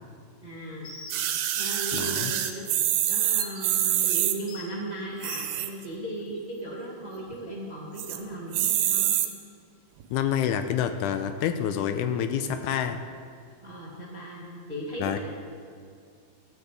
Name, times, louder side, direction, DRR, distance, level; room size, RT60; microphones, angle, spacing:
voice 1, 0.4-0.9 1.5-2.7 3.1-9.1 13.6-15.2, right 1 dB, 20° right, -4 dB, 1.1 m, -37 dB
Bird, 0.8-1.1 1.6-1.7 2.4-2.5 3.4-3.6 4.5-4.6 5.3-5.4, left 3 dB, 35° left, 2.8 m, -41 dB
sound 1, 1.1-4.4 5.1-5.8 6.3-6.4 6.6-6.7 7.1-7.5 8.0-8.2 8.5-9.3 10.0-10.1, right 11 dB, 90° right, 2.5 m, -26 dB
voice 2, 1.9-2.3 10.1-13.0 15.0-15.2, left 9 dB, 80° left, 9 dB, 2.0 m, -27 dB
13.5 x 6.7 x 8.2 m, 2.2 s
omnidirectional pair, 3.8 m